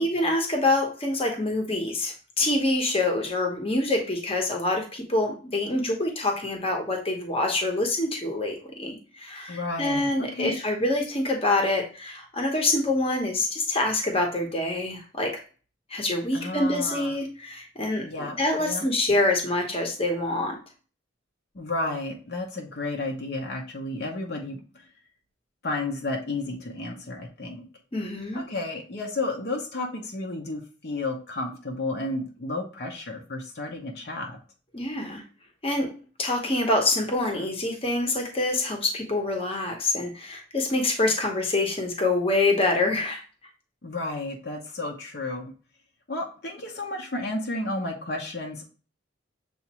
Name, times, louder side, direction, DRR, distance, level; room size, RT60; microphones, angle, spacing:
voice 1, 0.0-15.4 15.9-20.6 27.9-28.4 34.7-35.2 35.6-35.9 36.2-43.2, left 2 dB, 30° left, 2 dB, 1.0 m, -26 dB
voice 2, 9.5-10.6 16.3-17.2 18.0-18.9 21.5-24.9 25.6-27.6 28.3-34.4 43.8-45.5 46.1-48.6, left 2 dB, 60° left, 0 dB, 0.8 m, -32 dB
6.9 x 2.6 x 2.9 m, 0.38 s
head